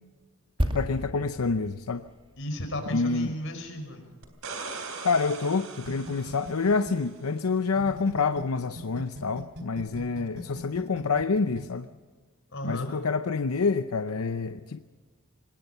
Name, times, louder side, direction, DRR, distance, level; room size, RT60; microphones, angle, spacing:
sound 1, 0.6-4.2 4.5-4.7, equal, 25° right, 2.3 m, -34 dB
voice 1, 0.7-2.1 2.9-3.4 5.0-11.9 12.6-14.8, left 4 dB, 85° left, 10 dB, 0.7 m, -27 dB
voice 2, 2.4-4.1 12.5-12.9, equal, 60° left, 5 dB, 5.1 m, -34 dB
sound 2, 4.2-7.1 9.9-10.0, right 4 dB, 70° right, 3.5 m, -40 dB
sound 3, 5.8-8.4 8.8-11.6, right 1 dB, 55° right, 3.8 m, -40 dB
26.0 x 20.5 x 5.6 m, 1.4 s
head